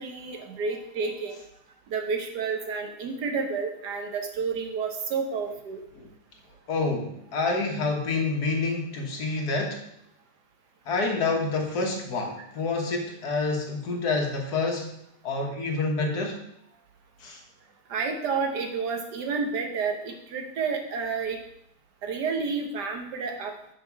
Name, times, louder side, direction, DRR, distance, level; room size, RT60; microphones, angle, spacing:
voice 1, 0.0-1.4 1.9-5.8 17.9-21.4 22.0-23.5, right 5 dB, 80° right, 4 dB, 1.6 m, -30 dB
voice 2, 6.7-9.8 10.9-14.9 15.2-16.5 17.2-17.4, left 3 dB, 70° left, 1 dB, 1.7 m, -28 dB
6.7 x 5.6 x 4.7 m, 0.75 s
omnidirectional pair, 1.8 m